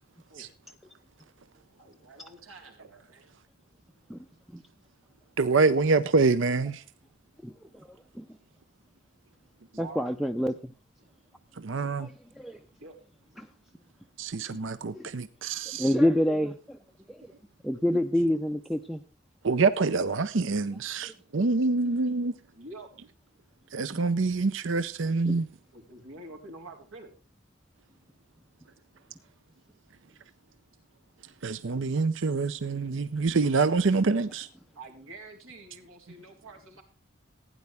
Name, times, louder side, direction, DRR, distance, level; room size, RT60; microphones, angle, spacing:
voice 1, 1.8-3.3 9.7-10.1 12.8-13.0 22.5-22.9 25.7-27.1 34.8-36.8, right 2 dB, 85° right, 3.8 m, -47 dB
voice 2, 5.4-6.8 11.5-12.1 14.2-15.9 19.4-22.3 23.7-25.5 31.4-34.5, right 4 dB, 60° right, 0.6 m, -26 dB
voice 3, 9.8-10.7 12.0-12.1 12.4-12.6 13.4-13.5 15.0-15.1 15.8-16.8 17.1-17.2 17.6-19.0 24.0-24.1 25.3-25.4, left 1 dB, ahead, 0.5 m, -27 dB
16.0 x 9.6 x 3.4 m
head